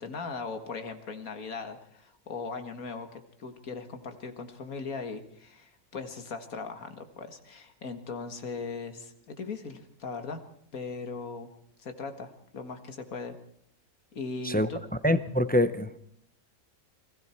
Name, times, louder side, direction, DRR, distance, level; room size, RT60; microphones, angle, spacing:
voice 1, 0.0-10.4 10.7-11.5 11.8-13.4 14.1-14.8, left 4 dB, 75° left, 7 dB, 2.2 m, -39 dB
voice 2, 15.0-16.0, left 1 dB, 15° left, 11 dB, 0.4 m, -25 dB
29.5 x 21.5 x 4.5 m, 0.68 s
omnidirectional pair, 1.5 m